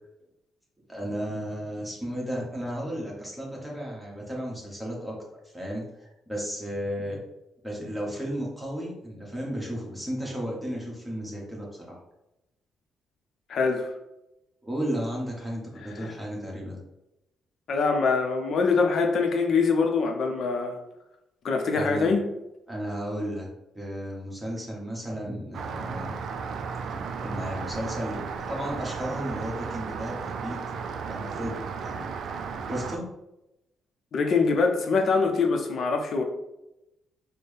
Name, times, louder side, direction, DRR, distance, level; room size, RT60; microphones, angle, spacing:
voice 1, 0.9-5.2 5.5-7.2 7.6-12.0 14.6-16.8 21.7-22.1 22.7-23.5 23.7-26.1 26.9-30.6 31.1-32.1 32.7-33.1, equal, 5° right, -3 dB, 1.3 m, -34 dB
voice 2, 13.5-13.9 16.0-16.1 17.7-20.7 21.4-22.2 34.1-36.2, left 4 dB, 60° left, 4 dB, 0.6 m, -24 dB
Rain, 25.5-33.0, right 5 dB, 65° right, 0.3 m, -34 dB
4.3 x 2.1 x 3.3 m, 0.91 s
cardioid pair, 90°, 0 cm